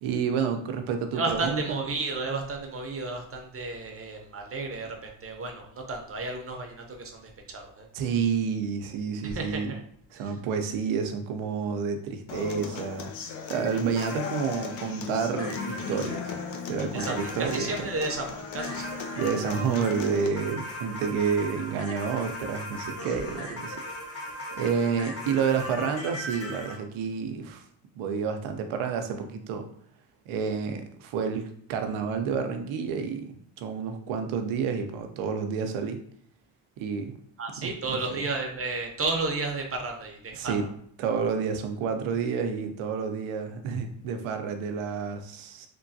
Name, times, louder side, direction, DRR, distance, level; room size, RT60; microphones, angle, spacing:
voice 1, 0.0-1.8 7.9-9.8 10.1-16.3 16.7-17.7 19.1-23.8 24.2-27.6 27.9-29.7 30.3-36.0 36.8-37.1 37.6-38.0 40.4-40.7 41.0-45.7, right 6 dB, 85° right, 6 dB, 0.6 m, -29 dB
voice 2, 1.1-7.9 9.2-9.8 10.2-10.4 16.9-19.0 37.4-40.7, right 3 dB, 30° right, 2 dB, 0.6 m, -33 dB
Human voice / Acoustic guitar, 12.3-20.3, left 6 dB, 75° left, 0.6 m, -37 dB
sound 1, 14.0-26.8, left 1 dB, 30° left, 0.8 m, -39 dB
3.2 x 2.2 x 2.6 m, 0.62 s
cardioid pair, 80°, 47 cm